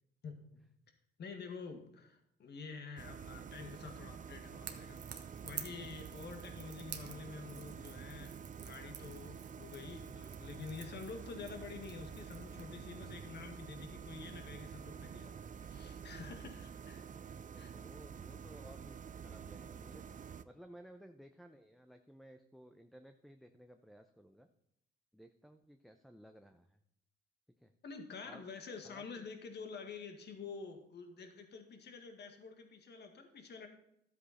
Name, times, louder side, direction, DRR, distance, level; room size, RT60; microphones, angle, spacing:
voice 1, 0.2-0.6 1.2-17.7 27.8-33.7, left 5 dB, 60° left, 5 dB, 1.9 m, -48 dB
sound 1, 3.0-20.4, right 7 dB, 40° right, 0.6 m, -49 dB
Crackle / Crack, 4.6-12.7, right 8 dB, 60° right, 1.3 m, -51 dB
voice 2, 17.5-19.0 19.2-24.5 25.1-26.8 27.6-27.7 28.2-28.5 28.8-29.3, equal, ahead, 7 dB, 0.7 m, -57 dB
12.5 x 8.1 x 4.3 m, 0.76 s
cardioid pair, 90°, 20 cm